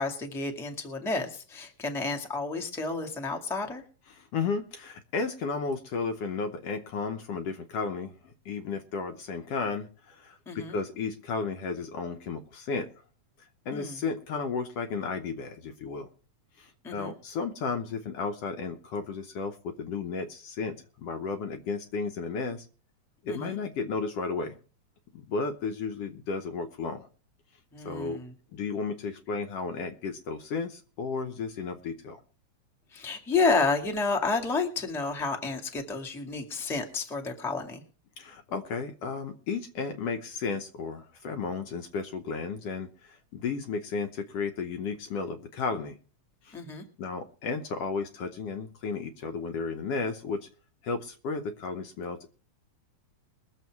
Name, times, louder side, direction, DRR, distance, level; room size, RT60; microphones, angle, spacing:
voice 1, 0.0-3.8 10.4-10.8 13.7-14.0 16.8-17.1 23.3-23.6 27.7-28.3 32.9-37.8 46.5-46.8, left 4 dB, ahead, 2 dB, 1.2 m, -30 dB
voice 2, 4.1-12.9 13.4-16.1 16.6-22.7 23.2-24.6 25.1-27.1 27.9-28.2 28.5-32.2 38.2-46.0 46.4-46.6 47.0-50.5 50.8-52.3, left 4 dB, 65° left, 6 dB, 1.8 m, -33 dB
21.5 x 7.4 x 4.6 m, 0.38 s
omnidirectional pair, 3.3 m